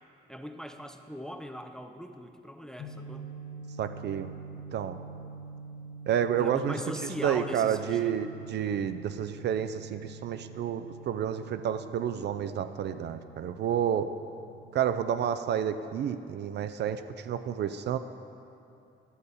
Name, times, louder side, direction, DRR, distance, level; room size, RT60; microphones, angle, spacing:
voice 1, 0.3-3.3 6.4-8.2, equal, 5° left, 6 dB, 0.5 m, -40 dB
sound 1, 2.8-16.2, right 4 dB, 60° left, 0.9 m, -46 dB
voice 2, 3.8-4.3 4.7-5.0 6.1-6.7 7.2-14.1 14.7-18.0, right 9 dB, 60° right, 10 dB, 0.4 m, -30 dB
11.0 x 6.6 x 4.1 m, 2.7 s
cardioid pair, 90°, 20 cm